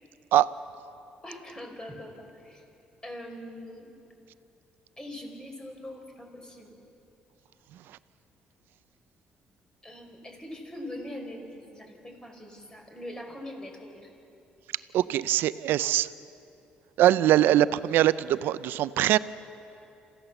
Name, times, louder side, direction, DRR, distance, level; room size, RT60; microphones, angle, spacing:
voice 1, 1.2-2.6 3.0-3.9 5.0-6.8 9.8-14.1, left 1 dB, 20° left, 2 dB, 4.9 m, -42 dB
voice 2, 14.9-16.1 17.0-19.2, right 13 dB, 80° right, 16 dB, 0.5 m, -22 dB
27.5 x 15.5 x 7.1 m, 2.7 s
cardioid pair, 80°, 4 cm